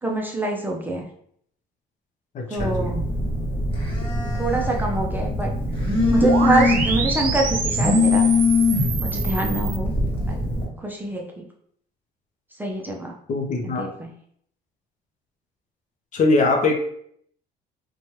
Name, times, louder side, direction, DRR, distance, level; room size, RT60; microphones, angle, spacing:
voice 1, 0.0-1.1 2.5-3.0 4.3-5.5 6.1-8.2 9.0-10.4 10.8-11.4 12.5-13.1 13.6-14.1, right 2 dB, 10° right, 0 dB, 0.4 m, -26 dB
voice 2, 2.3-2.9 13.3-13.8 16.1-16.8, left 3 dB, 45° left, 3 dB, 0.6 m, -21 dB
Telephone, 2.6-10.6, left 2 dB, 30° left, 1.2 m, -22 dB
sound 1, 6.2-9.8, right 5 dB, 55° right, 0.6 m, -27 dB
2.7 x 2.2 x 3.1 m, 0.66 s
cardioid pair, 110°, 17 cm